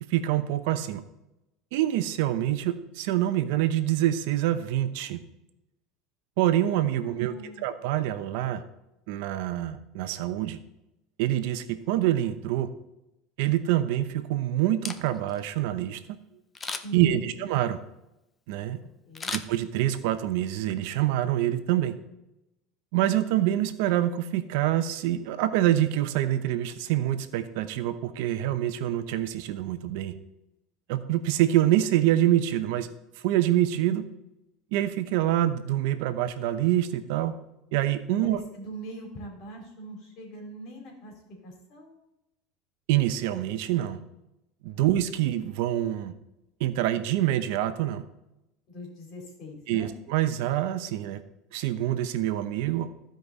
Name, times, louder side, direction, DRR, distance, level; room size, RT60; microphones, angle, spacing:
voice 1, 0.1-1.0 1.7-5.2 6.4-7.3 7.6-8.6 9.1-10.6 11.2-12.7 13.4-16.2 16.9-17.8 18.5-18.8 19.3-21.9 22.9-30.1 30.9-32.9 33.2-34.1 34.7-37.3 37.7-38.4 42.9-44.0 44.6-46.1 46.6-48.0 49.7-51.2 51.5-52.9, right 13 dB, 70° right, 10 dB, 0.8 m, -26 dB
voice 2, 7.0-7.7 16.8-17.3 19.1-19.4 38.1-41.1 41.4-41.9 48.7-49.9, right 1 dB, 50° left, 0 dB, 3.6 m, -41 dB
Camera, 14.7-15.4 16.5-17.1 19.1-20.1 20.5-20.6, left 4 dB, 15° left, 0.6 m, -36 dB
14.5 x 5.2 x 4.1 m, 0.90 s
supercardioid pair, 145°, 0 cm